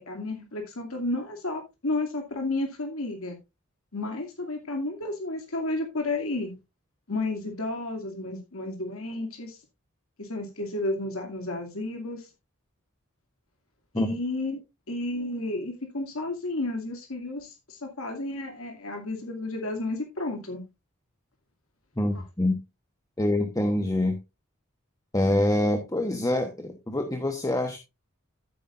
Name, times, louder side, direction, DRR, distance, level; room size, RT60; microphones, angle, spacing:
voice 1, 0.0-3.4 3.9-6.5 7.1-9.6 10.2-12.3 13.9-14.6 14.9-20.6, left 2 dB, 80° left, 3 dB, 2.4 m, -32 dB
voice 2, 22.0-22.6 23.2-24.2 25.1-27.8, left 1 dB, 15° left, 5 dB, 1.0 m, -25 dB
13.5 x 8.3 x 2.5 m, 0.24 s
head